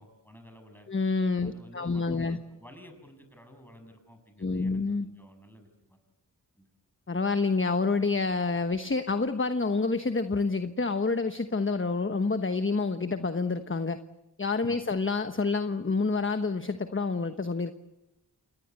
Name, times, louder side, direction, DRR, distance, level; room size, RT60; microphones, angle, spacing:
voice 1, 0.0-0.9 1.4-6.0 6.6-6.7 14.7-14.9, equal, 5° left, 6 dB, 7.0 m, -53 dB
voice 2, 0.9-2.4 4.4-5.1 7.1-14.0 14.4-17.7, left 4 dB, 30° left, 9 dB, 1.1 m, -28 dB
28.0 x 19.0 x 8.2 m, 0.95 s
cardioid pair, 40°, 40 cm